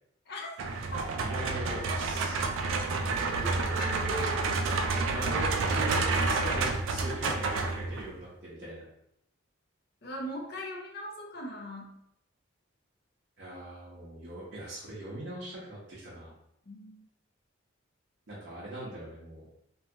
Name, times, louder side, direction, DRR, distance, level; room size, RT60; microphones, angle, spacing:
sound 1, 0.6-8.2, right 3 dB, 70° right, 0.3 m, -29 dB
voice 1, 1.2-2.4 4.9-8.8 13.4-16.3 18.3-19.5, right 1 dB, 55° right, -9 dB, 0.7 m, -41 dB
voice 2, 3.3-4.4 10.0-12.0 16.7-17.0, equal, 50° left, -1 dB, 0.6 m, -39 dB
2.7 x 2.2 x 2.8 m, 0.78 s
head